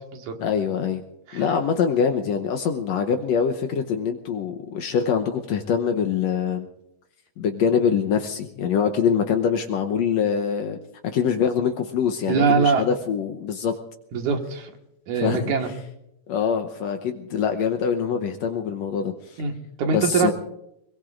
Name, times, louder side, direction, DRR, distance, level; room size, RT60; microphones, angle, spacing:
voice 1, 0.4-1.0 1.3-6.7 7.4-10.8 11.0-13.7 15.1-15.5 16.3-19.4 19.9-20.3, left 7 dB, 70° left, 5 dB, 2.0 m, -24 dB
voice 2, 12.3-12.8 14.1-14.7 15.1-15.7 19.4-20.3, right 5 dB, 85° right, 3 dB, 3.2 m, -23 dB
25.5 x 21.0 x 2.6 m, 0.82 s
omnidirectional pair, 3.3 m